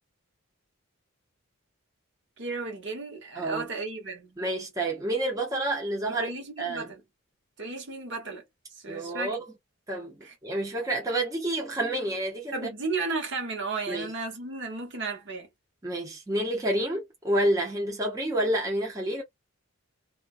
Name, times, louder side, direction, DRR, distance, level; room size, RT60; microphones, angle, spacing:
voice 1, 2.4-4.4 6.1-7.0 7.6-8.4 8.7-9.4 10.2-10.4 12.5-15.5, right 3 dB, 55° right, 1.0 m, -34 dB
voice 2, 3.4-3.7 4.4-6.3 6.6-6.9 8.9-9.4 9.9-12.6 13.9-14.1 15.8-19.2, right 1 dB, 15° right, 0.7 m, -29 dB
2.4 x 2.2 x 2.4 m
head